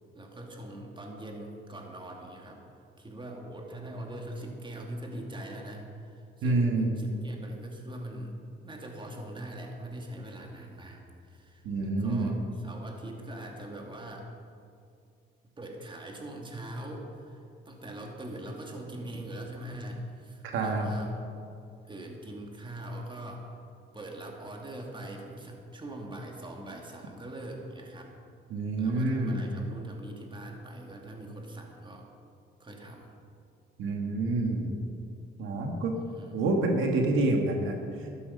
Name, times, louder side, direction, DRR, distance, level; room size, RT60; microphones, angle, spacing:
voice 1, 0.1-2.6 3.0-8.4 8.6-14.3 15.6-21.1 21.8-23.6 23.9-28.1 28.8-32.1 32.6-33.1 36.1-36.5, right 1 dB, 25° right, 1 dB, 2.4 m, -42 dB
voice 2, 6.4-6.9 11.6-12.3 20.4-20.9 28.5-29.5 33.8-34.7 35.4-35.9 36.3-38.1, right 2 dB, 85° right, 2 dB, 1.7 m, -27 dB
12.5 x 12.0 x 5.2 m, 2.4 s
cardioid pair, 90°, 20 cm